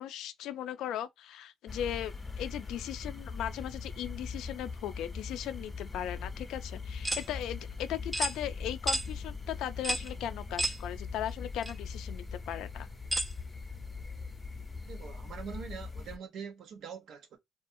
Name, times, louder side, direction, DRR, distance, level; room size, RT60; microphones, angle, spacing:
voice 1, 0.0-12.9, left 11 dB, 85° left, 0.3 m, -38 dB
sound 1, 1.7-16.2, left 4 dB, 20° left, 0.7 m, -41 dB
Bolts into Iron Pipe Flange, 7.0-7.3 8.1-8.4 8.9-9.1 9.8-10.1 10.6-10.8 11.6-11.7 13.1-13.3, right 1 dB, 15° right, 0.5 m, -31 dB
voice 2, 14.9-17.4, right 6 dB, 75° right, 0.7 m, -43 dB
2.4 x 2.4 x 2.6 m
cardioid pair, 90°, 0 cm